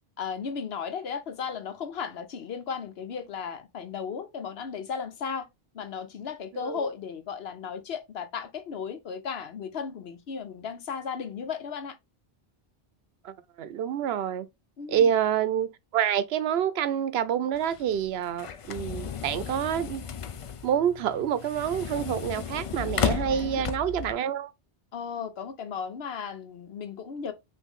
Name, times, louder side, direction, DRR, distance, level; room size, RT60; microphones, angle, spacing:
voice 1, 0.2-5.5 5.7-12.0 14.8-15.1 23.2-23.7 24.9-27.3, left 6 dB, 75° left, 1.0 m, -35 dB
voice 2, 13.2-14.5 14.9-20.0 20.6-24.5, right 9 dB, 80° right, 0.8 m, -27 dB
sound 1, 17.5-24.1, left 7 dB, 55° left, 0.3 m, -34 dB
5.6 x 2.6 x 3.5 m
omnidirectional pair, 1.0 m